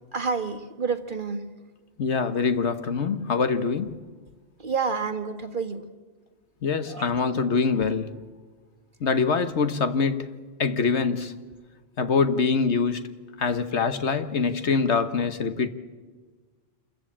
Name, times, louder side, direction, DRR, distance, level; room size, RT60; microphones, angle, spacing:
voice 1, 0.1-1.4 4.6-5.9 6.9-7.2, right 5 dB, 45° right, 1.5 m, -29 dB
voice 2, 2.0-4.0 6.6-8.2 9.0-10.3 10.6-11.3 12.0-13.1 13.4-15.7, left 5 dB, 65° left, 1.4 m, -24 dB
27.0 x 14.5 x 8.7 m
omnidirectional pair, 1.3 m